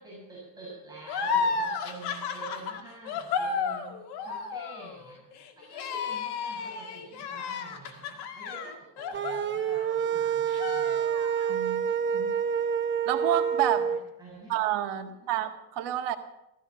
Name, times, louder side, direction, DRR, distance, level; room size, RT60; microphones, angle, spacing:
voice 1, 0.0-5.3 5.6-11.0 14.2-14.6 15.3-15.4, right 2 dB, 10° right, -7 dB, 7.0 m, -47 dB
sound 1, 1.1-10.1 10.5-11.5, left 5 dB, 65° left, 2.1 m, -33 dB
sound 2, 9.1-14.0, right 7 dB, 25° right, 0.8 m, -28 dB
voice 2, 11.5-11.8 12.1-12.3 13.1-13.9 14.5-16.2, right 12 dB, 70° right, 6 dB, 1.8 m, -29 dB
15.5 x 15.0 x 5.9 m, 0.86 s
cardioid pair, 130°, 42 cm